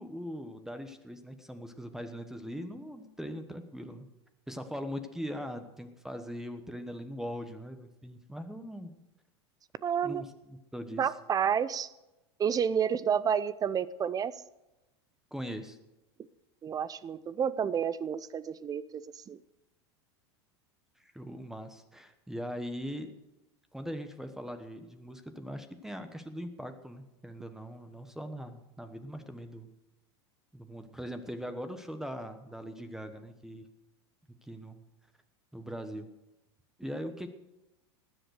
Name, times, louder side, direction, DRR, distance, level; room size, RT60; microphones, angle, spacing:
voice 1, 0.0-4.1 4.5-8.9 10.0-11.1 15.3-15.8 21.0-23.1 23.7-29.7 30.5-33.7 34.4-34.8 35.5-36.1 36.8-37.3, equal, 5° right, 8 dB, 1.2 m, -41 dB
voice 2, 9.8-10.2 11.0-11.9 12.4-14.3 16.6-19.4, right 8 dB, 25° right, 17 dB, 0.6 m, -30 dB
19.5 x 7.9 x 6.5 m, 0.99 s
hypercardioid pair, 105°, 15 cm